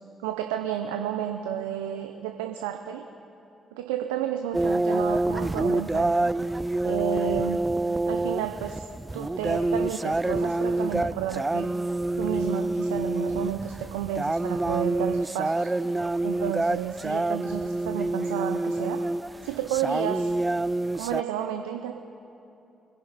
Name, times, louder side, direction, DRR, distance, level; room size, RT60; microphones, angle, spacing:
voice 1, 0.2-3.0 3.7-6.3 6.8-7.6 8.0-8.9 9.1-11.7 12.2-15.7 16.2-19.0 19.4-20.3 21.0-21.9, right 10 dB, 80° right, 5 dB, 0.6 m, -31 dB
sound 1, 4.5-21.2, right 2 dB, 20° right, 0.3 m, -27 dB
25.0 x 10.5 x 4.1 m, 2.9 s
hypercardioid pair, 45°, 0 cm